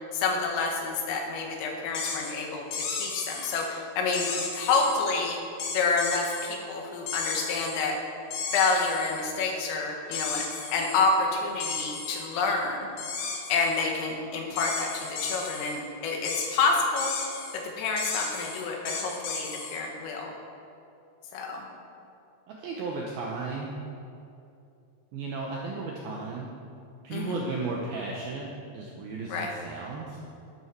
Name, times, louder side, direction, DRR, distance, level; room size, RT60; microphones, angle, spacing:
voice 1, 0.1-4.3 4.6-5.4 5.7-8.0 8.5-10.5 10.7-12.9 13.5-17.2 17.5-20.3 21.3-21.7 27.1-27.5 29.3-29.5, left 4 dB, 90° left, 0 dB, 4.3 m, -28 dB
sound 1, 1.9-2.3 2.7-3.7 4.1-5.0 5.6-6.5 7.1-7.9 8.3-9.3 10.1-11.1 11.6-12.3 13.0-13.9 14.6-15.8 16.3-16.5 17.0-17.6 18.0-19.8, left 5 dB, 65° left, 3.3 m, -34 dB
voice 2, 22.5-23.7 25.1-26.5 27.0-30.2, right 3 dB, 80° right, -2 dB, 2.2 m, -35 dB
13.0 x 12.5 x 4.7 m, 2.6 s
omnidirectional pair, 5.8 m